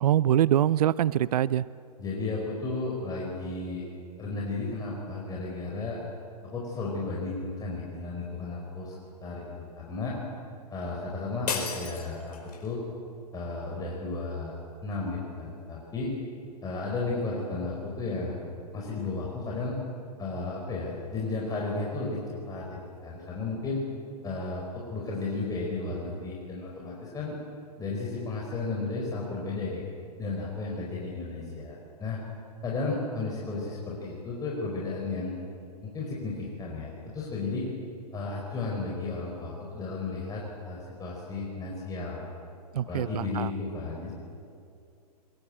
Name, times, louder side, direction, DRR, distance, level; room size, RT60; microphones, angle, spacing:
voice 1, 0.0-1.6 42.7-43.5, right 11 dB, 70° right, 19 dB, 0.6 m, -24 dB
voice 2, 2.0-3.8 4.2-6.0 6.5-8.9 9.2-10.2 10.7-12.8 13.3-14.6 14.8-16.1 16.6-18.4 18.7-19.8 20.2-22.2 22.5-23.8 24.2-27.4 27.8-29.8 30.2-32.2 32.6-35.4 35.8-37.7 38.1-42.2 42.9-44.1, left 3 dB, 20° left, -3 dB, 4.8 m, -33 dB
sound 1, 11.5-12.7, left 5 dB, 70° left, 5.1 m, -34 dB
23.0 x 21.0 x 8.8 m, 2.5 s
hypercardioid pair, 120°, 21 cm